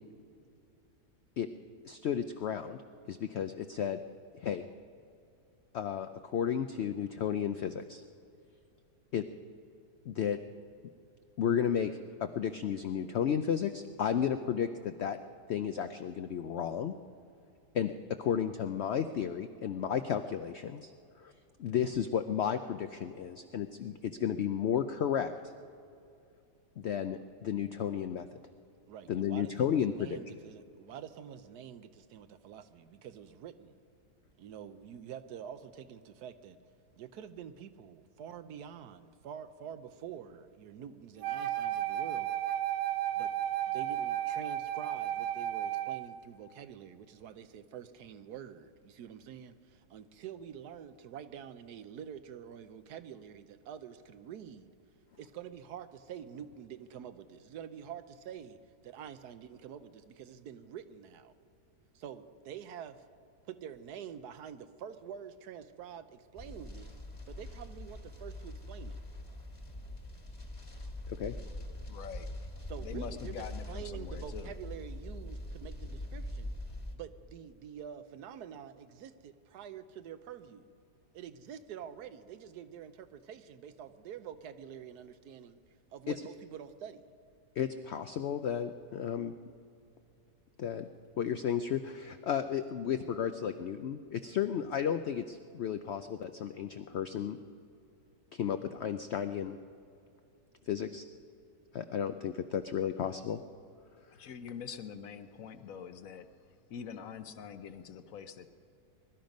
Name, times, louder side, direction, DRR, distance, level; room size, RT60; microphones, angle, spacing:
voice 1, 1.8-2.8 3.1-4.0 4.4-4.6 5.7-8.0 9.1-9.2 10.1-10.4 11.4-11.9 12.2-15.2 15.5-16.9 17.7-17.9 18.2-20.9 21.2-21.3 21.6-25.3 26.8-28.3 29.1-30.4 71.1-71.3 87.6-89.3 90.6-90.9 91.2-97.4 98.3-99.6 100.7-101.0 101.7-103.4, left 8 dB, 80° left, 9 dB, 0.6 m, -33 dB
voice 2, 28.9-33.7 34.4-36.6 37.0-42.4 43.1-43.3 43.7-54.7 55.2-58.6 58.8-61.3 61.9-63.0 63.5-66.9 67.3-69.0 72.7-76.5 76.9-80.6 81.1-85.6 85.9-87.0, right 9 dB, 75° right, 11 dB, 1.2 m, -47 dB
Wind instrument woodwind instrument, 41.2-46.1, right 12 dB, 55° right, 0.9 m, -33 dB
sound 1, 66.4-77.0, left 1 dB, 20° left, 1.4 m, -43 dB
voice 3, 71.9-72.3 72.8-74.5 104.2-106.3 106.7-108.5, left 7 dB, 65° left, 10 dB, 1.0 m, -44 dB
21.5 x 12.0 x 5.3 m, 2.5 s
omnidirectional pair, 1.8 m